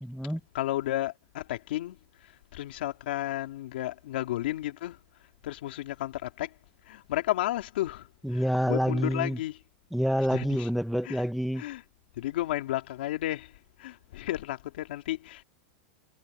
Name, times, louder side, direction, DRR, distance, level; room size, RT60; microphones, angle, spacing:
voice 1, 0.0-0.4 8.2-9.4 9.9-11.6, equal, ahead, 0.7 m, -27 dB
voice 2, 0.5-2.0 2.5-5.0 5.4-6.5 6.9-9.6 10.3-10.7 11.0-11.2 11.6-11.8 12.2-13.5 13.8-15.4, left 15 dB, 75° left, 2.9 m, -32 dB
supercardioid pair, 150°, 6 cm